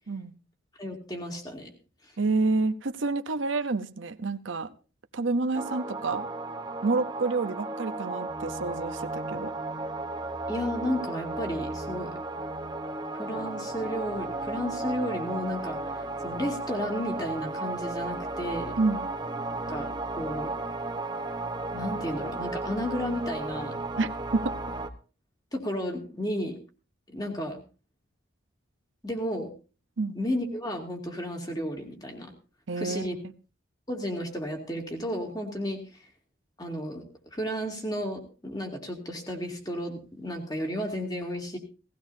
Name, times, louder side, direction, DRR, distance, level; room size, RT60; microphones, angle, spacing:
voice 1, 0.8-1.7 10.5-12.1 13.1-18.8 19.7-20.5 21.7-23.8 25.5-26.6 27.1-27.6 29.0-29.5 30.1-32.3 32.8-33.2 33.9-36.0 36.6-37.0 37.3-41.6, equal, 20° left, 3 dB, 2.4 m, -33 dB
voice 2, 2.2-4.7 5.1-6.3 6.8-9.5 18.8-19.1 24.0-24.5 30.0-30.2 32.7-33.1, right 3 dB, 80° right, 10 dB, 0.8 m, -28 dB
sound 1, 5.5-24.9, right 2 dB, 20° right, 0.9 m, -34 dB
18.0 x 15.5 x 2.7 m, 0.35 s
head